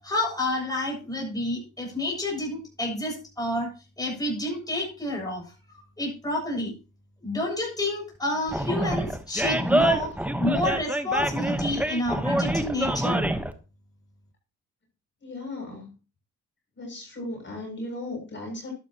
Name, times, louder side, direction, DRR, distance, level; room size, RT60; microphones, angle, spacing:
voice 1, 0.0-3.7 4.0-5.5 6.0-6.7 7.2-10.1 10.4-13.2, left 1 dB, 10° left, -1 dB, 7.3 m, -29 dB
Animal, 8.5-13.5, right 1 dB, 5° right, 1.2 m, -26 dB
voice 2, 15.2-15.9 16.8-18.7, left 2 dB, 40° left, 0 dB, 7.2 m, -36 dB
12.0 x 12.0 x 3.0 m, 0.32 s
cardioid pair, 90°, 30 cm